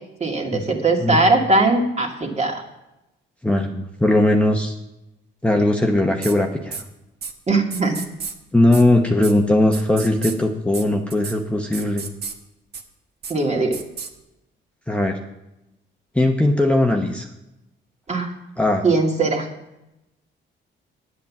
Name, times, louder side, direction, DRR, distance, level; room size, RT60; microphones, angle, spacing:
voice 1, 0.2-2.6 7.5-8.0 13.3-13.8 18.1-18.3 18.8-19.5, right 3 dB, 35° right, 1 dB, 2.2 m, -20 dB
voice 2, 3.4-4.7 5.4-6.8 8.5-12.1 14.9-15.2 16.1-17.3 18.6-18.8, left 1 dB, 5° left, 2 dB, 0.9 m, -19 dB
sound 1, 6.2-6.3 6.7-6.8 7.2-7.3 7.7-8.3 8.7-8.8 9.2-9.3 9.7-10.3 10.7-10.8 11.1-11.3 11.7-12.3 12.7-12.8 13.2-13.3 13.7-14.1, right 5 dB, 55° right, 1.3 m, -32 dB
9.2 x 8.4 x 7.2 m, 0.92 s
cardioid pair, 90°, 20 cm